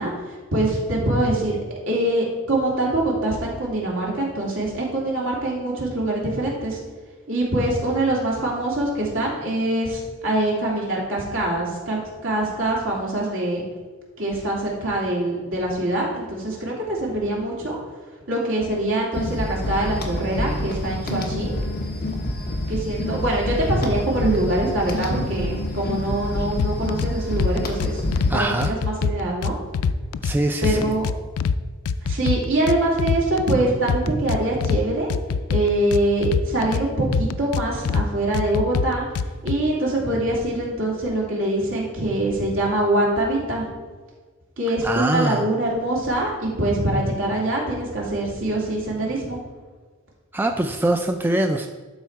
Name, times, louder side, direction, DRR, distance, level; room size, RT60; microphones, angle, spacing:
voice 1, 0.0-1.6 1.9-6.8 7.3-13.6 14.2-17.8 18.3-21.5 22.7-28.0 28.3-29.5 30.6-31.1 32.0-35.1 35.5-39.0 39.4-43.6 44.6-49.4, right 1 dB, 65° right, -4 dB, 2.6 m, -24 dB
sound 1, 19.1-28.4, left 1 dB, 45° left, 1.1 m, -27 dB
sound 2, 26.6-27.1 27.4-28.3 28.6-30.3 30.6-31.6 31.9-33.6 33.9-34.8 35.1-36.8 37.1-38.0 38.3-39.6, left 6 dB, 80° left, 0.4 m, -23 dB
voice 2, 28.3-28.7 30.2-30.9 44.8-45.5 50.3-51.7, right 1 dB, 10° right, 4 dB, 0.3 m, -23 dB
12.0 x 4.1 x 4.6 m, 1.4 s
head